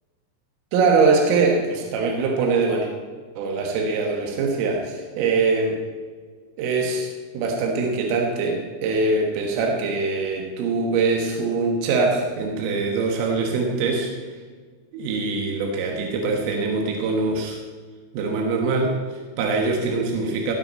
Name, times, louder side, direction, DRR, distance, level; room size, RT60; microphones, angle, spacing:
voice 1, 0.7-2.9 3.4-5.8 6.6-14.1 14.9-17.6 18.1-20.5, right 4 dB, 80° right, 1 dB, 4.0 m, -23 dB
17.5 x 8.8 x 4.3 m, 1.5 s
omnidirectional pair, 5.8 m